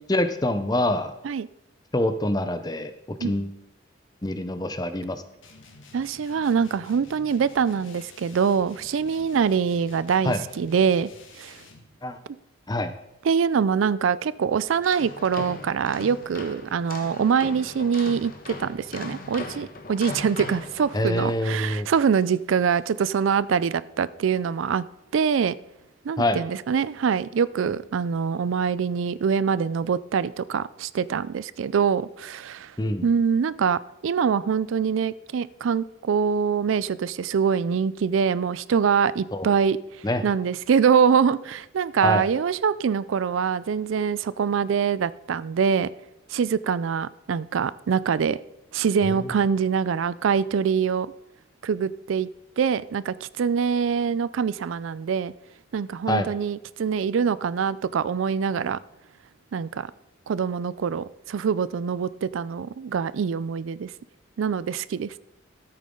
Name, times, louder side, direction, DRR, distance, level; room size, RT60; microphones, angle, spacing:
voice 1, 0.1-1.1 1.9-2.9 3.2-3.5 4.2-5.2 10.2-10.4 12.0-12.2 12.7-12.9 20.9-21.9 26.2-26.4 32.8-33.1 39.3-39.5 40.0-40.2 42.0-42.2 49.0-49.3 56.1-56.3, left 1 dB, 20° left, 10 dB, 0.7 m, -25 dB
sound 1, 5.4-11.9, left 3 dB, 80° left, 1.8 m, -49 dB
voice 2, 5.9-11.1 11.4-11.6 13.2-24.8 25.1-25.5 26.0-32.7 33.0-39.8 40.2-45.9 46.3-48.4 48.7-51.1 51.6-52.3 52.6-55.3 55.7-58.8 59.5-59.9 60.3-63.9 64.4-65.1, right 6 dB, 80° right, 18 dB, 0.4 m, -24 dB
sound 2, 14.7-21.4, left 2 dB, 45° left, 1.1 m, -39 dB
13.5 x 8.7 x 3.8 m, 0.85 s
head